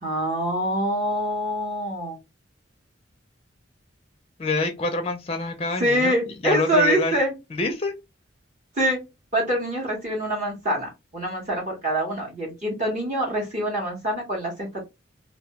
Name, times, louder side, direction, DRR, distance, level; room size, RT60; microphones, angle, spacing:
voice 1, 0.0-2.2 5.8-7.3 8.7-9.0 9.3-14.8, equal, 35° right, 0.8 m, -25 dB
voice 2, 4.4-6.1 6.4-7.2 7.5-7.9, left 2 dB, 30° left, 0.4 m, -26 dB
2.2 x 2.2 x 2.8 m
head